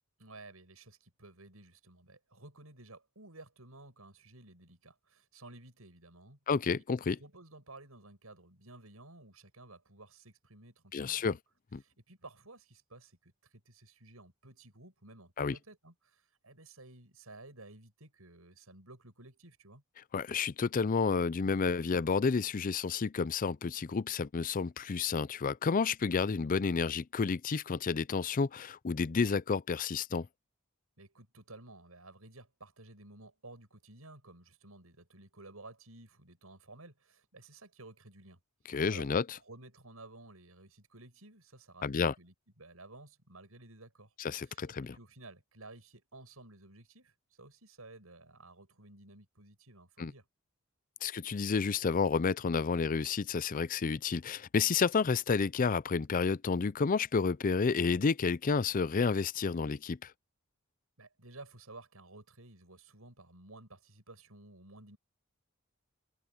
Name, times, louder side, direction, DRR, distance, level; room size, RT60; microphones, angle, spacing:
voice 1, 0.2-6.4 7.1-11.4 11.8-19.8 31.0-38.4 38.7-39.1 39.4-44.6 44.9-50.3 61.0-65.0, right 2 dB, 85° right, 6.8 m, -54 dB
voice 2, 6.5-7.2 10.9-11.4 11.7-11.8 15.4-15.6 20.1-30.3 38.7-39.2 41.8-42.1 44.2-44.9 50.0-50.1 51.0-60.1, left 5 dB, 40° left, 0.4 m, -30 dB
head